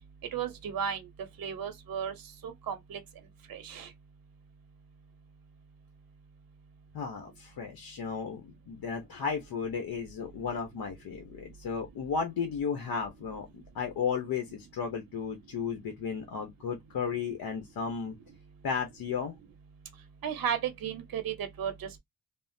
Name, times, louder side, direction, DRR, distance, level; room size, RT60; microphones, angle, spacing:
voice 1, 0.3-1.1 1.4-2.1 2.4-3.0 3.5-3.9 20.2-22.0, right 8 dB, 70° right, 0.8 m, -34 dB
voice 2, 6.9-18.2 18.6-19.3, left 6 dB, 90° left, 0.8 m, -34 dB
3.5 x 2.0 x 2.6 m
wide cardioid pair, 180°, 36 cm